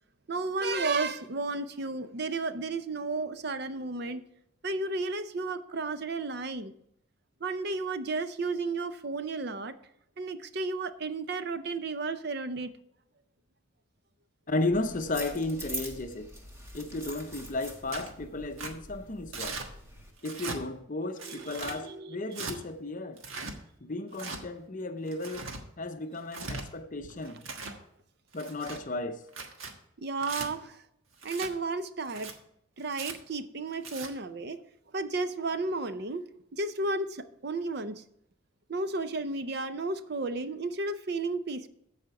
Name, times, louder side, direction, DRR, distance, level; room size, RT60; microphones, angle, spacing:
voice 1, 0.3-4.2 4.6-6.7 7.4-9.7 10.2-12.7 21.2-22.2 30.0-30.8 31.2-32.3 32.8-34.6 34.9-36.2 36.5-38.0 38.7-41.7, right 3 dB, 50° right, 0.6 m, -33 dB
voice 2, 14.5-16.3 16.7-19.6 20.2-23.2 23.8-25.5 25.8-27.5 28.3-29.2, left 2 dB, 40° left, 0.7 m, -34 dB
sound 1, 14.7-20.1, right 1 dB, 15° right, 1.4 m, -44 dB
Tearing, 17.9-18.1 18.6-18.7 19.3-19.7 20.2-20.6 21.2-21.8 22.3-22.6 23.2-23.5 24.1-24.4 25.1-25.6 26.2-26.6 27.2-27.8 28.3-28.8 29.3-29.7 30.2-30.5 31.2-31.5 32.1-32.3 32.9-33.1 33.7-34.1, right 3 dB, 80° right, 1.4 m, -39 dB
14.5 x 5.0 x 4.7 m
head